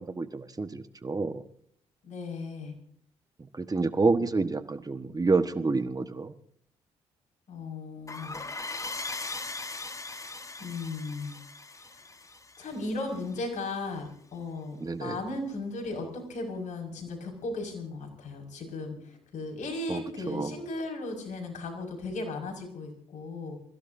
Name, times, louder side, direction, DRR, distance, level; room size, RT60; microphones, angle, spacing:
voice 1, 0.0-1.4 3.5-6.3 14.8-15.2 19.9-20.0 20.3-20.5, right 3 dB, 30° right, 9 dB, 1.4 m, -28 dB
voice 2, 2.0-2.7 7.5-8.4 10.6-11.4 11.9-12.0 12.6-23.6, left 2 dB, 65° left, 3 dB, 5.6 m, -36 dB
sound 1, 8.1-13.4, left 3 dB, 25° left, 1.4 m, -39 dB
27.5 x 16.0 x 2.7 m, 0.66 s
supercardioid pair, 55°, 13 cm